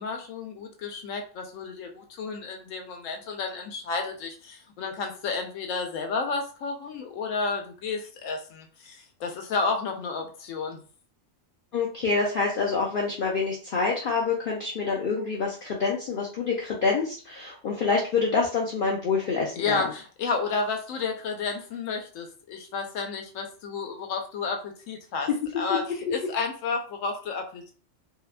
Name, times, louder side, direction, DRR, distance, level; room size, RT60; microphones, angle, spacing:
voice 1, 0.0-10.8 19.6-25.3 25.6-27.7, left 4 dB, 80° left, 3 dB, 1.0 m, -31 dB
voice 2, 11.7-19.8, left 4 dB, 60° left, -2 dB, 0.6 m, -26 dB
2.7 x 2.2 x 2.4 m, 0.40 s
omnidirectional pair, 1.3 m